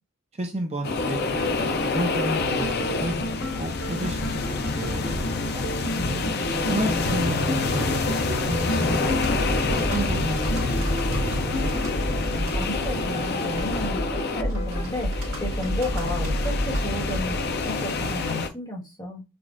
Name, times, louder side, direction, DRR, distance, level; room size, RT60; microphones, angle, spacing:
voice 1, 0.3-3.2 3.6-5.7 6.7-9.6 9.9-11.8, right 1 dB, 30° right, 0.6 m, -32 dB
sound 1, 0.8-18.5, left 3 dB, 50° left, 0.5 m, -27 dB
sound 2, 2.0-14.8, equal, 80° left, 2.0 m, -33 dB
voice 2, 5.9-6.6 12.5-19.2, left 1 dB, 20° left, 1.4 m, -33 dB
Computer keyboard, 9.0-17.7, equal, 65° right, 1.7 m, -30 dB
6.0 x 2.4 x 2.5 m
head